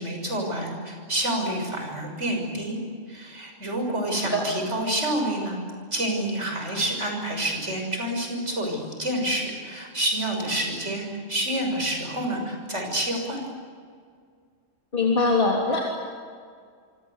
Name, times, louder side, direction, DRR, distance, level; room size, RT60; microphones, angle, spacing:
voice 1, 0.0-2.8 3.1-5.6 5.9-13.4, right 1 dB, 65° right, 2 dB, 6.7 m, -28 dB
voice 2, 14.9-15.8, left 3 dB, 40° left, -2 dB, 3.5 m, -22 dB
27.5 x 25.5 x 8.2 m, 2.1 s
omnidirectional pair, 1.3 m